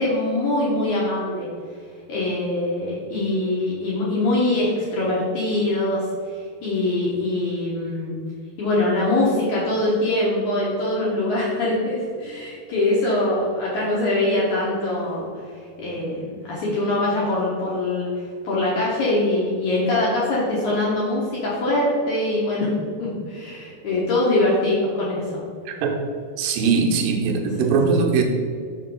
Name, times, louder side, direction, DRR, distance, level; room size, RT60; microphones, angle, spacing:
voice 1, 0.0-1.5 2.1-8.2 8.6-15.3 15.8-18.1 18.4-22.7 23.0-25.3 27.6-27.8, left 2 dB, 65° left, -6 dB, 1.9 m, -23 dB
voice 2, 25.7-26.0 26.4-28.2, right 5 dB, 75° right, 2 dB, 2.2 m, -20 dB
6.3 x 6.1 x 3.8 m, 2.2 s
omnidirectional pair, 4.7 m